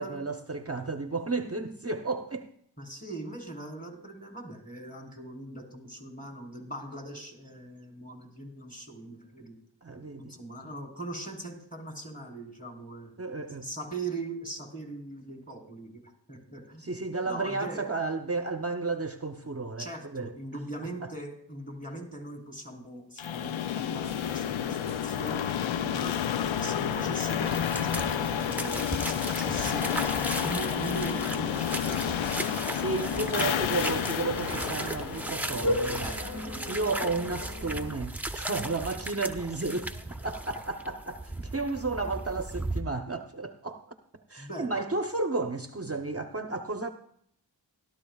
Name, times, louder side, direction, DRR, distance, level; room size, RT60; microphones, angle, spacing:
voice 1, 0.0-2.5 9.8-10.3 13.2-13.7 16.8-20.3 21.0-21.1 32.7-36.1 36.7-40.0 40.2-43.8 44.3-46.9, right 3 dB, 30° right, 0.8 m, -32 dB
voice 2, 2.8-9.5 10.2-13.2 13.6-16.8 17.2-17.9 19.8-32.0 33.4-33.5 41.6-41.8 44.4-44.8, right 2 dB, 15° left, 4.1 m, -40 dB
sound 1, 23.2-36.1, left 9 dB, 85° left, 0.6 m, -30 dB
sound 2, 24.0-37.9, left 1 dB, 35° left, 1.7 m, -39 dB
sound 3, 27.4-42.8, right 1 dB, 5° right, 0.9 m, -37 dB
17.0 x 13.0 x 2.4 m
cardioid pair, 40°, 45 cm